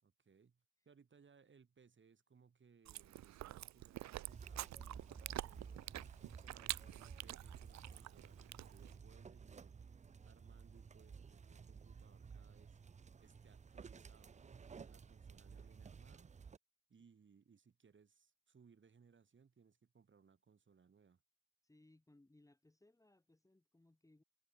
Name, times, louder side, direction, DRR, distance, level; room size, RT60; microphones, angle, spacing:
voice 1, 0.0-9.7 10.2-12.8 13.2-16.3 16.9-21.2, right 6 dB, 40° right, 6.8 m, -67 dB
Chewing mastication, 2.8-9.0, right 14 dB, 65° right, 0.7 m, -48 dB
sound 1, 4.3-16.6, right 6 dB, 25° right, 0.6 m, -55 dB
voice 2, 21.6-24.2, left 2 dB, 10° left, 3.2 m, -68 dB
cardioid pair, 90°, 30 cm